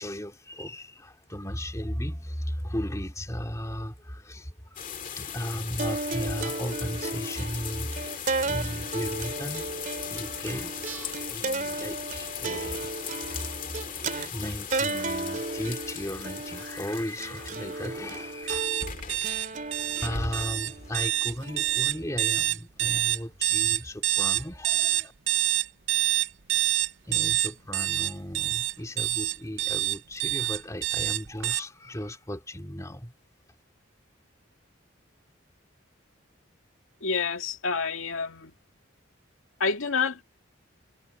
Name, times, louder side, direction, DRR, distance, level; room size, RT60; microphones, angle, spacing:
voice 1, 0.0-4.9 5.2-9.7 10.1-13.5 13.9-18.7 20.0-25.1 27.0-33.1, equal, 15° left, 3.5 m, -36 dB
sound 1, 4.8-21.2, left 7 dB, 40° left, 2.2 m, -39 dB
sound 2, 5.8-22.2, right 3 dB, 40° right, 3.2 m, -34 dB
sound 3, 18.5-31.6, right 15 dB, 70° right, 0.7 m, -26 dB
voice 2, 37.0-38.5 39.6-40.2, left 5 dB, 90° left, 2.1 m, -28 dB
head